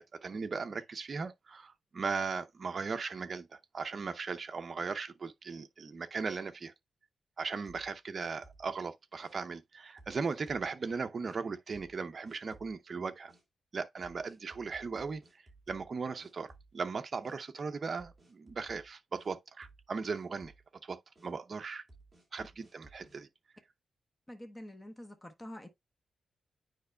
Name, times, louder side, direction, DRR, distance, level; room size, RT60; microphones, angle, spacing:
voice 1, 0.0-6.7 7.4-13.3 13.7-20.5 20.8-21.9 22.3-23.3, right 4 dB, 40° right, 0.6 m, -38 dB
sound 1, 7.7-8.8 9.2-9.4 10.0-10.7 11.2-11.4 11.7-12.0 12.2-12.8 13.3-13.4 14.0-15.9 16.2-16.9 17.2-17.4 18.0-19.3 19.6-19.9 20.1-20.7 21.2-21.3 21.9-23.2, right 2 dB, 5° right, 2.6 m, -59 dB
voice 2, 24.3-25.7, left 1 dB, 10° left, 0.9 m, -47 dB
9.2 x 5.1 x 2.2 m
wide cardioid pair, 155°, 0 cm